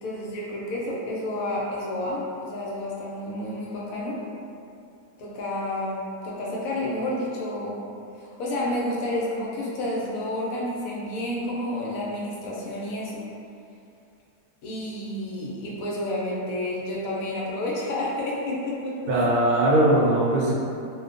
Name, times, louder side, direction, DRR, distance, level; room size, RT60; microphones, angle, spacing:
voice 1, 0.0-4.2 5.2-7.8 8.2-13.3 14.6-19.2, left 1 dB, 70° left, -5 dB, 0.9 m, -30 dB
voice 2, 19.1-20.5, right 1 dB, 70° right, -4 dB, 1.0 m, -20 dB
2.5 x 2.1 x 2.4 m, 2.5 s
omnidirectional pair, 1.7 m